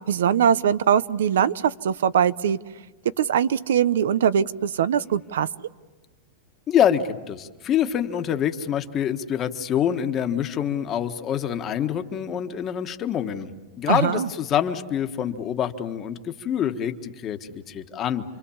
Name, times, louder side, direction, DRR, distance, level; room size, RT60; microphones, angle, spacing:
voice 1, 0.1-2.6 3.2-5.5 13.9-14.3, right 8 dB, 90° right, 16 dB, 0.9 m, -21 dB
voice 2, 6.7-13.5 13.8-18.2, left 9 dB, 20° left, 7 dB, 1.4 m, -26 dB
29.0 x 24.5 x 7.2 m, 1.2 s
supercardioid pair, 165°, 0 cm